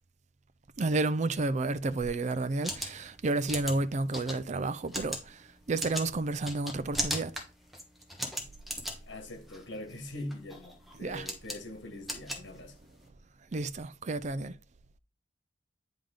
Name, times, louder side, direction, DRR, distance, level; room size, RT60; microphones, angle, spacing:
voice 1, 0.8-7.3 11.0-11.3 13.5-14.6, right 2 dB, 40° right, 0.5 m, -31 dB
sound 1, 2.4-13.1, equal, ahead, 1.3 m, -39 dB
voice 2, 9.0-12.8, left 1 dB, 75° left, 1.7 m, -43 dB
10.0 x 3.6 x 3.8 m
head